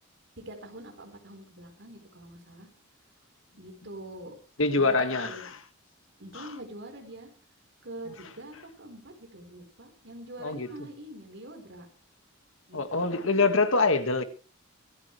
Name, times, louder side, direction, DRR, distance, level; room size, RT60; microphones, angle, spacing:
voice 1, 0.4-2.7 3.5-4.3 4.7-5.5 6.2-7.3 7.8-11.9 12.7-13.2, right 1 dB, 60° right, 4.2 m, -44 dB
voice 2, 4.6-5.6 6.3-6.5 10.4-10.7 12.7-14.2, left 3 dB, 65° left, 1.8 m, -25 dB
25.0 x 10.5 x 3.3 m
head